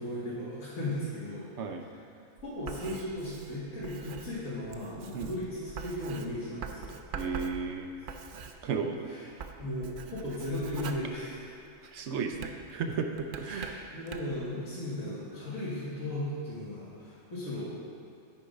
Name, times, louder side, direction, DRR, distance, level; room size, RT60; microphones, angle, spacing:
voice 1, 0.0-1.5 2.4-6.9 8.0-8.1 9.1-9.3 9.6-11.4 13.5-17.8, left 1 dB, 65° left, -13 dB, 2.3 m, -36 dB
Writing, 2.4-9.0 9.3-11.8 12.3-14.4, right 5 dB, 85° right, 0.4 m, -44 dB
voice 2, 7.1-7.9 8.6-9.1 11.9-13.9, right 5 dB, 65° right, 4 dB, 0.9 m, -34 dB
8.3 x 4.8 x 5.2 m, 2.6 s
omnidirectional pair, 1.5 m